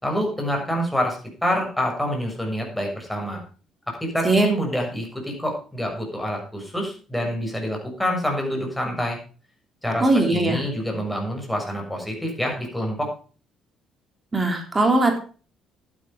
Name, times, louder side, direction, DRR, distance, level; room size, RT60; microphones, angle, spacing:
voice 1, 0.0-3.4 3.9-9.2 9.8-13.1, equal, 5° left, 1 dB, 6.7 m, -27 dB
voice 2, 10.0-10.6 14.3-15.2, right 2 dB, 20° right, 4 dB, 3.6 m, -19 dB
11.5 x 10.5 x 5.1 m, 0.38 s
cardioid pair, 95°, 0 cm